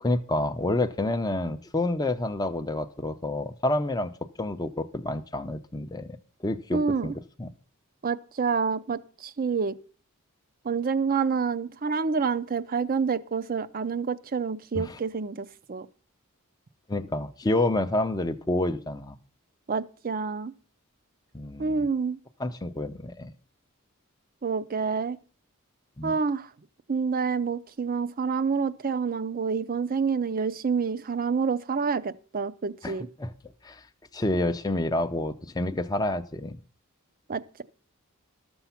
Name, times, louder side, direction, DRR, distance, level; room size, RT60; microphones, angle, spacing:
voice 1, 0.0-4.1 4.4-6.2 6.4-7.1 7.4-7.5 14.7-15.0 16.9-19.2 21.3-21.9 22.4-23.3 26.0-26.2 32.8-33.3 33.6-33.8 34.1-36.5, left 2 dB, 20° left, 0.6 m, -28 dB
voice 2, 6.7-7.1 8.0-9.7 10.6-15.9 19.7-20.5 21.6-22.2 24.4-25.2 26.0-26.5 26.9-33.1 37.3-37.6, right 5 dB, 40° right, 0.5 m, -28 dB
12.5 x 7.1 x 5.7 m
head